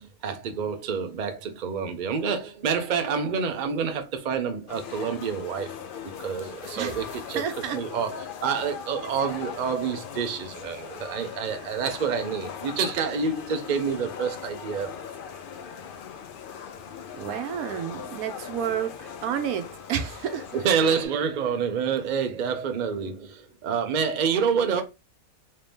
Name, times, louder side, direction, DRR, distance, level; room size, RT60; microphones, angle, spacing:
voice 1, 0.0-5.7 6.2-7.4 7.7-14.9 20.5-24.8, right 6 dB, 55° right, 0.5 m, -28 dB
sound 1, 4.7-21.1, left 7 dB, 85° left, 0.4 m, -39 dB
voice 2, 7.3-7.8 17.1-20.5, right 9 dB, 90° right, 1.1 m, -30 dB
3.2 x 2.8 x 3.4 m
omnidirectional pair, 1.5 m